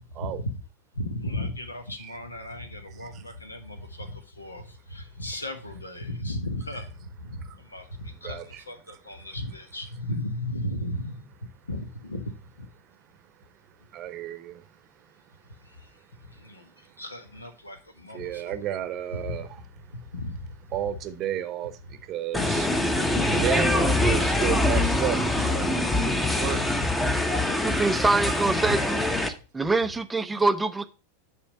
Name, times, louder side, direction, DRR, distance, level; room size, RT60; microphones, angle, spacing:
voice 1, 0.9-11.2 11.7-12.7 15.6-15.9 16.3-16.7 17.0-18.5 19.1-19.5 20.1-20.5 23.1-23.4, left 1 dB, 80° left, 1.1 m, -35 dB
voice 2, 8.1-9.0 13.9-14.6 18.1-19.6 20.7-22.7 23.0-26.6 27.8-27.9 28.3-28.4, right 10 dB, 35° right, 0.8 m, -33 dB
sound 1, 22.3-29.3, left 1 dB, 10° left, 0.9 m, -24 dB
voice 3, 27.6-29.0 29.5-30.8, right 3 dB, 10° right, 0.5 m, -24 dB
9.8 x 3.4 x 5.5 m
figure-of-eight pair, 90°, 0 cm